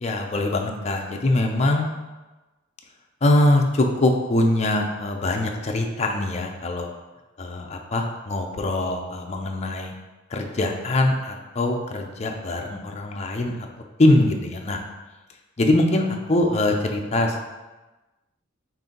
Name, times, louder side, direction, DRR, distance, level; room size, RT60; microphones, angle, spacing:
voice 1, 0.0-1.9 3.2-6.9 7.4-9.9 10.3-13.6 14.0-14.8 15.6-17.4, left 1 dB, 35° left, 2 dB, 0.5 m, -22 dB
5.3 x 2.5 x 3.8 m, 1.1 s
head